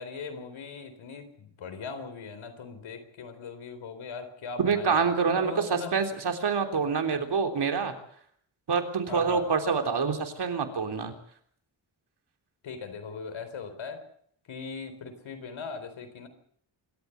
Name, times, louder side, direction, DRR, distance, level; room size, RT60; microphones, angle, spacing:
voice 1, 0.0-5.1 5.3-5.9 9.1-9.5 12.6-14.1 14.5-16.3, left 5 dB, 85° left, 8 dB, 4.3 m, -39 dB
voice 2, 4.6-7.9 8.7-11.1, right 5 dB, 60° right, 5 dB, 3.6 m, -26 dB
26.5 x 13.5 x 8.1 m, 0.64 s
cardioid pair, 100°, 46 cm